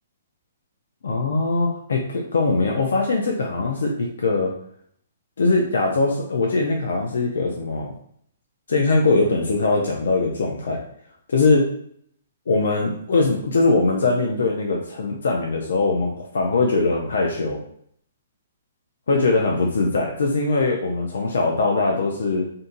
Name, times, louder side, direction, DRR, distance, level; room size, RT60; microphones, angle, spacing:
voice 1, 1.0-4.5 5.4-7.9 8.7-10.8 11.3-11.7 12.5-17.6 19.1-22.5, left 3 dB, 85° left, 0 dB, 0.5 m, -21 dB
2.7 x 2.6 x 3.8 m, 0.67 s
hypercardioid pair, 175°, 0 cm